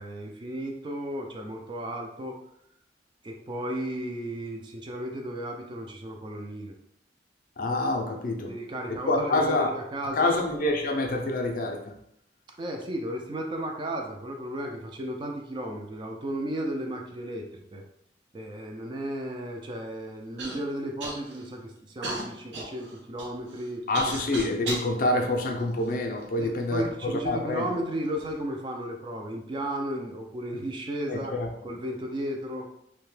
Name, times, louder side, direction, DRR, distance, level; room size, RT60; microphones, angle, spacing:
voice 1, 0.0-2.4 3.2-6.7 8.5-10.4 12.6-17.8 18.3-23.8 26.4-31.3 31.6-32.7, right 1 dB, 25° right, 2 dB, 0.3 m, -34 dB
voice 2, 7.6-8.5 9.0-9.7 10.1-11.9 23.9-27.7 31.1-31.5, left 2 dB, 50° left, 2 dB, 0.4 m, -27 dB
Human voice / Cough, 20.4-20.6 21.0-21.5 22.0-24.9 25.6-26.4 27.2-27.3 28.0-28.3, right 2 dB, 75° right, 0.7 m, -37 dB
2.7 x 2.1 x 3.1 m, 0.77 s
head